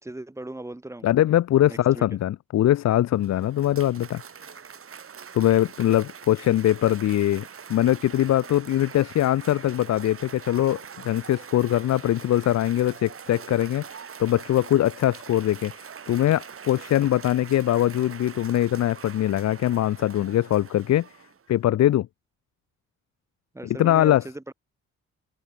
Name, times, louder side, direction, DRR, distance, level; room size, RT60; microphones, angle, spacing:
voice 1, 0.0-1.1 1.7-2.2 23.5-24.5, right 1 dB, 10° right, 3.3 m, -38 dB
voice 2, 1.0-4.2 5.3-7.4 7.7-10.8 11.0-15.7 16.1-21.1 21.5-22.1 23.8-24.2, left 12 dB, 60° left, 0.8 m, -22 dB
Cheering / Applause, 2.9-21.6, right 7 dB, 45° right, 7.0 m, -43 dB
open air
cardioid pair, 90°, 30 cm